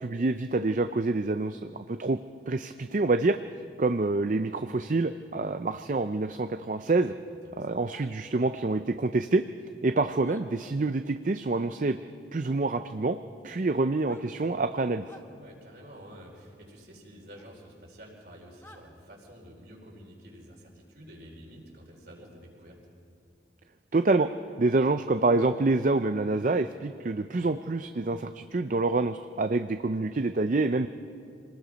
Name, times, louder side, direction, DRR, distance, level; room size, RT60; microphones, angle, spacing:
voice 1, 0.0-2.2 2.5-3.4 3.8-7.1 7.6-9.4 9.8-12.0 12.3-13.2 13.4-15.1 23.9-24.3 24.6-30.9, right 3 dB, 45° right, 9 dB, 0.5 m, -27 dB
voice 2, 7.3-7.8 15.3-22.8, equal, 60° right, -1 dB, 4.7 m, -49 dB
sound 1, 7.9-8.1 10.2-10.4 12.4-12.6 13.9-14.3 15.0-15.3 17.3-17.5 18.6-18.8, left 1 dB, 15° left, 1.1 m, -52 dB
26.5 x 19.0 x 5.2 m, 2.3 s
head